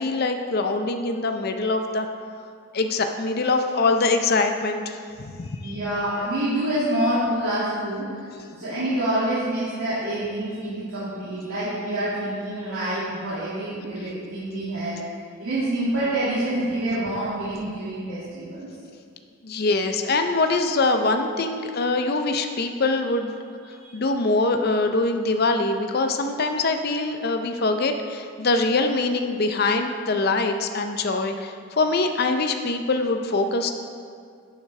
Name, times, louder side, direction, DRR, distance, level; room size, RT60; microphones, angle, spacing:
voice 1, 0.0-2.1 2.7-5.7 19.4-23.3 23.7-33.7, left 3 dB, 45° left, 6 dB, 0.5 m, -23 dB
voice 2, 5.4-8.3 8.6-15.0 15.4-18.7 23.8-24.0, right 1 dB, 85° right, -12 dB, 2.1 m, -27 dB
11.5 x 6.9 x 3.2 m, 2.2 s
head